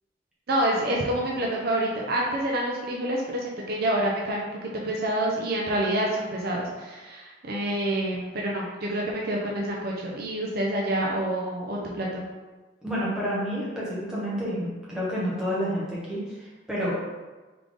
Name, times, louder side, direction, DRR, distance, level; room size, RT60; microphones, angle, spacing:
voice 1, 0.5-12.2, right 1 dB, 50° right, -2 dB, 0.5 m, -27 dB
voice 2, 12.8-16.9, equal, 5° right, -8 dB, 1.1 m, -29 dB
3.8 x 3.3 x 3.6 m, 1.2 s
head